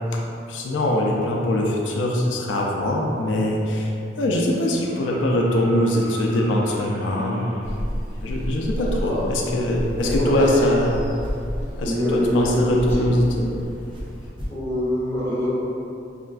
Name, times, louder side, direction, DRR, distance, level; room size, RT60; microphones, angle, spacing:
voice 1, 0.5-7.5 8.2-11.0 11.8-13.5, left 1 dB, 80° left, -1 dB, 0.4 m, -22 dB
sound 1, 4.4-7.6 9.4-9.5, right 1 dB, 90° right, 1.4 m, -41 dB
sound 2, 7.6-14.3, equal, 50° left, 0.8 m, -32 dB
voice 2, 8.8-9.2 10.0-10.7 11.8-13.0 14.5-15.5, equal, 15° left, -11 dB, 1.2 m, -24 dB
sound 3, 9.6-10.2 11.1-11.6 12.7-13.2 13.9-14.6, equal, 30° right, 0.5 m, -33 dB
4.9 x 2.4 x 2.2 m, 2.7 s
head